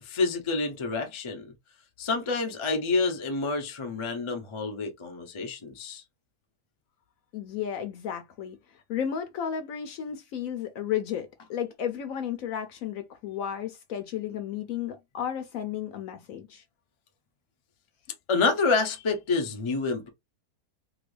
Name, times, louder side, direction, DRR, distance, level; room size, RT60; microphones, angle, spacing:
voice 1, 0.0-1.5 2.0-6.0 18.3-20.1, left 4 dB, 40° left, 0.4 m, -28 dB
voice 2, 7.3-8.6 8.9-16.6, left 9 dB, 70° left, 0.9 m, -33 dB
2.9 x 2.5 x 3.2 m
omnidirectional pair, 1.8 m